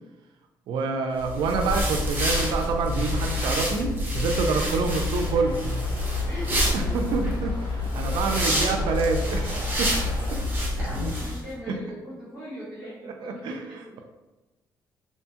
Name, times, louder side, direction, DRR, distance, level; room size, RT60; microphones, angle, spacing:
voice 1, 0.7-5.6 6.7-9.5 9.8-10.0 10.3-10.4 11.0-11.1 11.7-11.8 13.0-14.0, right 4 dB, 75° right, 5 dB, 0.4 m, -27 dB
sound 1, 1.2-11.4, left 1 dB, 25° right, 0.7 m, -27 dB
voice 2, 4.7-5.0 6.3-6.7 7.9-9.1 10.8-14.0, equal, 10° left, -13 dB, 1.0 m, -40 dB
sound 2, 5.1-10.4, left 1 dB, 70° left, 0.7 m, -41 dB
2.7 x 2.3 x 2.7 m, 1.1 s
cardioid pair, 140°, 8 cm